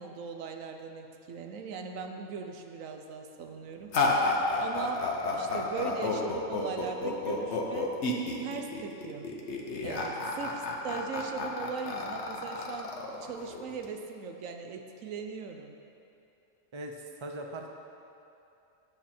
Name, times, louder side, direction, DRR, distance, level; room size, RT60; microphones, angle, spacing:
voice 1, 0.0-3.9 4.6-7.9 8.4-9.3 9.8-15.7, right 5 dB, 90° right, 5 dB, 1.1 m, -39 dB
sound 1, 3.9-13.9, left 3 dB, 60° left, 1.2 m, -31 dB
voice 2, 16.7-17.7, right 1 dB, 30° right, 3 dB, 0.6 m, -40 dB
10.5 x 7.5 x 4.4 m, 2.7 s
omnidirectional pair, 1.3 m